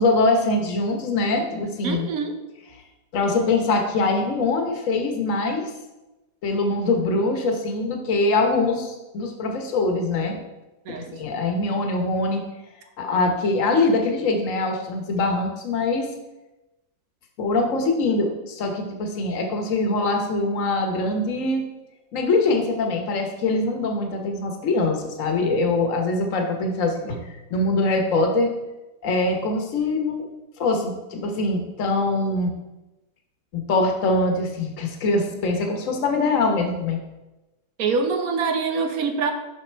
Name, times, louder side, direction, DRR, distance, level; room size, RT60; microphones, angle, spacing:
voice 1, 0.0-2.1 3.1-5.6 6.4-10.4 11.1-12.4 13.0-16.1 17.4-21.6 22.1-27.2 27.5-28.5 29.0-30.3 30.6-32.5 33.5-37.0, left 2 dB, 55° left, 4 dB, 1.3 m, -23 dB
voice 2, 1.8-2.4 10.9-11.1 27.1-27.2 37.8-39.3, right 5 dB, 65° right, 6 dB, 1.1 m, -25 dB
6.6 x 5.8 x 4.5 m, 1.0 s
omnidirectional pair, 1.8 m